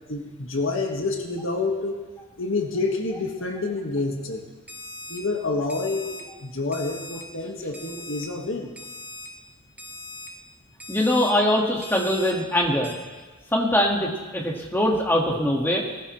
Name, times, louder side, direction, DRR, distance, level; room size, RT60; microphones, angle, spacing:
voice 1, 0.1-2.1 2.4-4.5 5.1-8.7, left 3 dB, 60° left, 1 dB, 1.8 m, -28 dB
Alarm, 4.7-5.2 5.7-6.2 6.7-7.2 7.7-8.2 8.8-9.3 9.8-10.3 10.8-11.3 11.8-12.3 12.8-12.9, left 2 dB, 5° right, 1.3 m, -40 dB
voice 2, 10.9-12.9 13.5-15.8, left 1 dB, 10° left, -1 dB, 1.8 m, -22 dB
19.0 x 15.0 x 3.3 m, 1.3 s
head